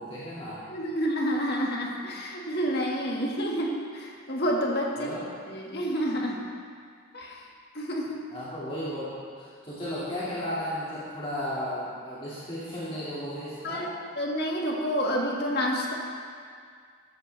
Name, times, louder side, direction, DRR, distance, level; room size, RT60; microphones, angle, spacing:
voice 1, 0.0-0.6 5.0-5.2 8.3-13.8, equal, 25° left, -10 dB, 2.1 m, -34 dB
voice 2, 0.6-5.1 5.5-6.4 7.1-7.4 7.7-8.2 13.6-13.9 14.2-15.9, equal, 50° left, -2 dB, 1.8 m, -29 dB
13.0 x 13.0 x 3.4 m, 2.1 s
head